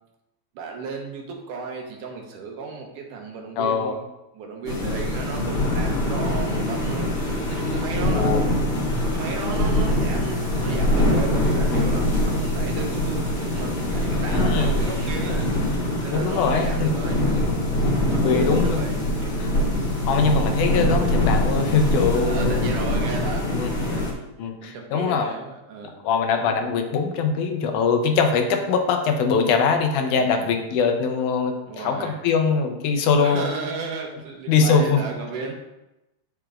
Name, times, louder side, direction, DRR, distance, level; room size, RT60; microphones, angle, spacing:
voice 1, 0.6-4.0 4.3-7.1 7.5-8.3 9.1-15.4 16.0-17.5 18.0-19.4 22.1-26.0 30.2-30.5 31.7-32.2 33.2-35.5, right 4 dB, 90° right, 1 dB, 2.6 m, -34 dB
voice 2, 3.6-3.9 8.0-8.4 14.3-14.7 16.1-16.9 18.2-18.8 19.4-19.5 20.1-22.8 23.5-23.7 24.4-25.3 26.0-33.4 34.5-35.0, left 5 dB, 85° left, 4 dB, 2.2 m, -22 dB
sound 1, 4.6-24.1, left 1 dB, 30° left, 2.0 m, -23 dB
7.9 x 7.1 x 2.5 m, 0.94 s
omnidirectional pair, 3.6 m